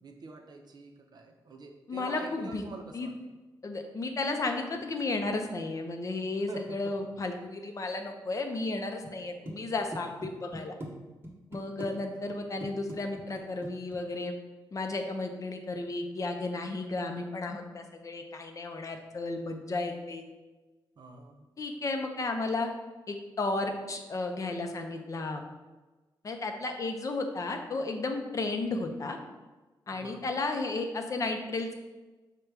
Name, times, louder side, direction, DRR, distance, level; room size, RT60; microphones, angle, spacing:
voice 1, 0.0-3.1 6.5-6.8 11.8-11.9 21.0-21.5 29.9-30.3, right 3 dB, 55° right, 3 dB, 0.6 m, -46 dB
voice 2, 1.9-2.6 2.9-3.1 3.6-10.7 11.5-14.3 14.7-20.2 21.6-22.7 23.1-25.4 26.2-29.2 29.9-31.7, left 3 dB, 40° left, 4 dB, 0.5 m, -33 dB
sound 1, 9.0-9.2 9.5-10.9 11.2-11.9 12.2-12.4 12.6-14.0, right 1 dB, 30° right, 1.1 m, -41 dB
5.2 x 2.2 x 4.5 m, 1.2 s
cardioid pair, 95°, 8 cm